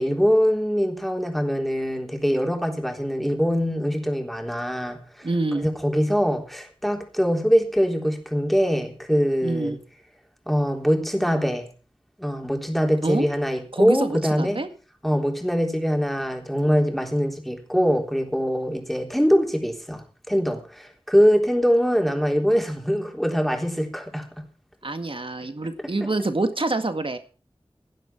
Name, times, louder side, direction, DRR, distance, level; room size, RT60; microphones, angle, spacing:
voice 1, 0.0-5.0 5.6-9.8 10.5-11.6 12.2-14.6 15.0-24.3, equal, ahead, 3 dB, 3.7 m, -23 dB
voice 2, 5.2-5.7 9.4-9.8 13.0-13.3 13.7-14.7 24.8-27.2, right 2 dB, 70° right, 8 dB, 1.9 m, -26 dB
17.0 x 11.0 x 4.5 m, 0.38 s
wide cardioid pair, 45°, 9 cm